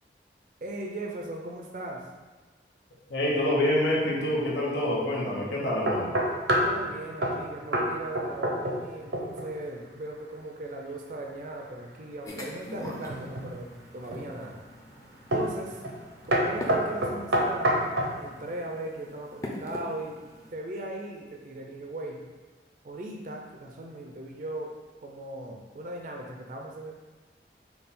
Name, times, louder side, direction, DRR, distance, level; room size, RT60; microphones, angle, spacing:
voice 1, 0.6-2.0 6.6-13.7 13.9-14.6 15.3-15.9 16.2-17.8 18.2-20.2 20.5-22.2 22.8-24.7 25.0-26.9, right 1 dB, 45° right, 1 dB, 0.4 m, -38 dB
voice 2, 3.1-6.1, left 1 dB, 90° left, -4 dB, 1.0 m, -26 dB
sound 1, 5.9-6.8 7.2-7.4 7.7-8.9 9.1-9.5 12.8-13.5 14.1-14.5 15.3-15.6 15.8-16.0 16.3-18.2, equal, 85° right, 0.8 m, -26 dB
sound 2, 12.2-20.5, left 1 dB, 20° left, 0.5 m, -43 dB
5.5 x 2.3 x 4.1 m, 1.3 s
head